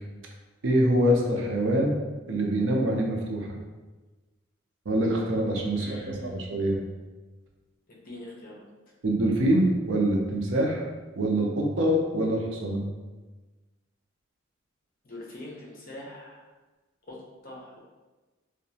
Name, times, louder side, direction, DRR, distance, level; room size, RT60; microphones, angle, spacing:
voice 1, 0.6-1.9 2.3-3.5 4.9-6.8 9.0-10.8 11.1-12.8, right 1 dB, 70° right, 1 dB, 0.5 m, -25 dB
voice 2, 5.7-6.4 8.0-8.6 15.0-16.4 17.1-17.2 17.4-17.8, left 1 dB, 45° left, -3 dB, 0.6 m, -42 dB
2.8 x 2.1 x 2.7 m, 1.2 s
head